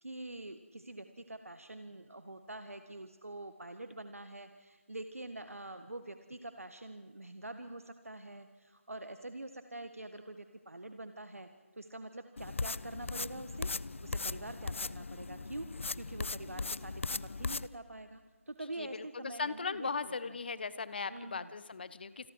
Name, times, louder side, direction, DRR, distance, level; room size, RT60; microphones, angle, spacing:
voice 1, 0.0-11.5 11.8-13.7 14.0-15.7 15.9-20.4 21.1-21.5, right 2 dB, 85° right, 9 dB, 1.6 m, -45 dB
sound 1, 12.4-17.7, left 3 dB, 65° left, 0.6 m, -38 dB
voice 2, 18.8-22.3, left 5 dB, 45° left, 15 dB, 1.1 m, -38 dB
28.5 x 22.0 x 4.7 m, 1.3 s
figure-of-eight pair, 160°, 7 cm